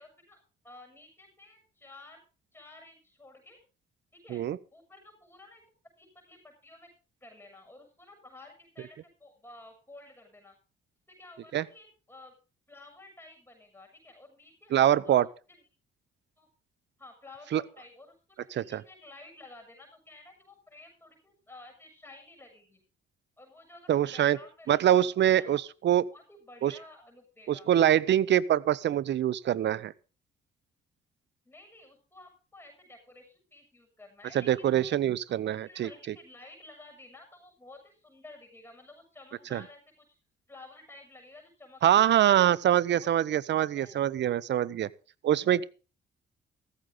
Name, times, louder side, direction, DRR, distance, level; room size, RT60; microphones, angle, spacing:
voice 1, 0.0-2.2 2.5-3.6 4.1-4.4 4.7-5.6 6.0-6.9 7.2-10.6 11.1-12.4 12.7-15.6 16.4-16.5 17.0-22.8 23.4-25.6 26.1-27.7 31.4-35.0 35.3-40.1 40.5-42.2 42.9-43.1 43.7-44.0, left 2 dB, 10° left, 7.0 m, -53 dB
voice 2, 14.7-15.3 17.5-17.6 18.5-18.8 23.9-24.4 24.7-26.0 26.6-26.7 27.5-29.9 34.3-35.9 39.5-39.6 41.8-44.9 45.2-45.7, right 11 dB, 65° right, 0.8 m, -24 dB
15.0 x 14.0 x 3.9 m
cardioid pair, 90°, 20 cm